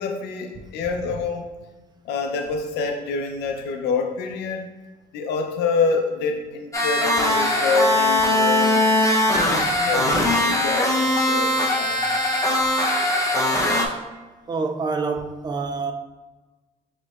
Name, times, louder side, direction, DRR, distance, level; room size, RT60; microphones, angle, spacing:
voice 1, 0.0-1.7 2.0-4.7 5.1-8.9 9.3-12.0, left 4 dB, 80° left, 4 dB, 0.6 m, -26 dB
sound 1, 6.7-13.9, left 1 dB, 20° left, 0.6 m, -20 dB
voice 2, 14.5-15.9, right 4 dB, 25° right, 5 dB, 0.3 m, -26 dB
6.2 x 3.1 x 2.4 m, 1.2 s
cardioid pair, 110°, 17 cm